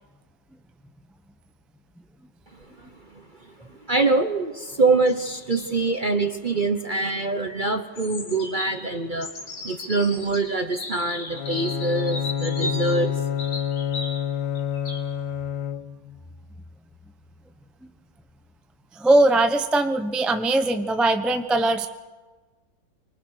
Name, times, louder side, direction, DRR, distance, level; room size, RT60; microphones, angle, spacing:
voice 1, 3.9-9.3 9.6-13.4, right 3 dB, 35° right, 7 dB, 0.9 m, -24 dB
sound 1, 5.0-5.7 7.9-14.2 14.5-15.0, left 2 dB, 60° left, 3.5 m, -36 dB
Bowed string instrument, 11.3-16.2, left 8 dB, 80° left, 1.7 m, -28 dB
voice 2, 19.0-21.9, right 2 dB, ahead, 7 dB, 0.6 m, -20 dB
25.5 x 24.5 x 6.5 m, 1.3 s
omnidirectional pair, 2.0 m